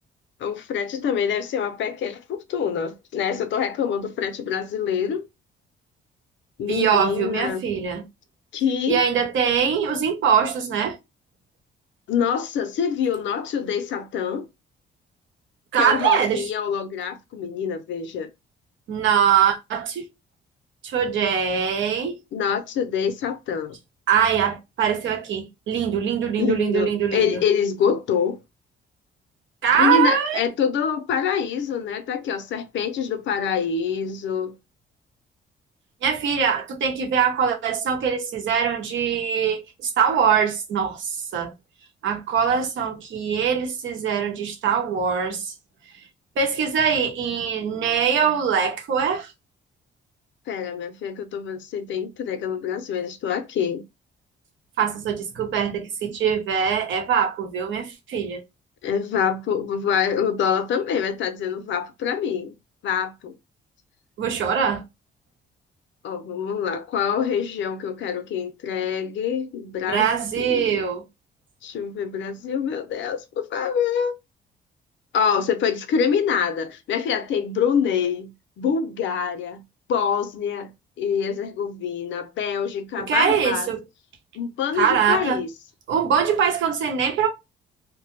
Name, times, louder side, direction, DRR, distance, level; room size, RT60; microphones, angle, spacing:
voice 1, 0.4-5.3 6.6-7.6 8.5-9.0 12.1-14.5 15.8-18.3 22.3-23.8 26.4-28.4 29.8-34.5 50.5-53.8 58.8-62.5 62.8-63.3 66.0-70.1 70.3-70.8 71.6-74.1 75.1-79.6 79.9-80.7 81.0-83.7 84.3-85.5, left 7 dB, 70° left, 0.5 m, -25 dB
voice 2, 6.7-8.0 8.9-11.0 15.7-16.5 18.9-20.0 20.8-22.2 24.1-27.4 29.6-30.4 36.0-41.5 42.0-45.5 46.4-49.3 54.8-58.4 64.2-64.8 69.9-71.0 83.1-83.8 84.8-85.4 85.9-87.3, right 7 dB, 75° right, 0.8 m, -22 dB
2.2 x 2.1 x 3.0 m
cardioid pair, 90°, 20 cm